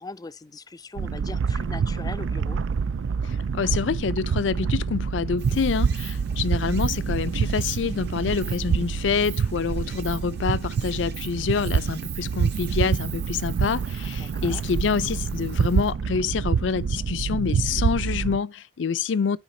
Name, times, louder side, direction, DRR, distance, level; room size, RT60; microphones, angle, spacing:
voice 1, 0.0-2.6 14.2-14.6, left 3 dB, 20° left, 0.4 m, -40 dB
sound 1, 1.0-18.4, right 6 dB, 85° right, 0.4 m, -27 dB
voice 2, 3.5-19.4, left 5 dB, 75° left, 0.5 m, -27 dB
Stream, 5.4-15.9, right 9 dB, 65° right, 1.5 m, -44 dB
12.0 x 5.0 x 2.7 m
head